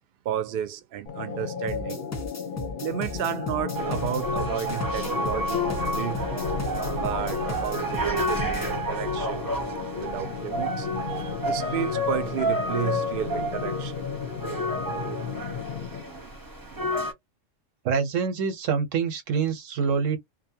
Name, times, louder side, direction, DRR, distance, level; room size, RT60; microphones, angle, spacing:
voice 1, 0.2-2.1 2.8-6.4 7.0-9.5 10.0-14.0 15.8-17.1, right 10 dB, 60° right, 0.6 m, -33 dB
sound 1, 1.1-16.2, left 6 dB, 50° left, 0.7 m, -34 dB
sound 2, 1.7-8.7, left 2 dB, 20° left, 0.5 m, -36 dB
sound 3, 3.8-17.1, equal, 20° right, 0.7 m, -30 dB
voice 2, 17.8-20.2, right 6 dB, 90° right, 1.1 m, -26 dB
2.6 x 2.2 x 2.6 m
omnidirectional pair, 1.3 m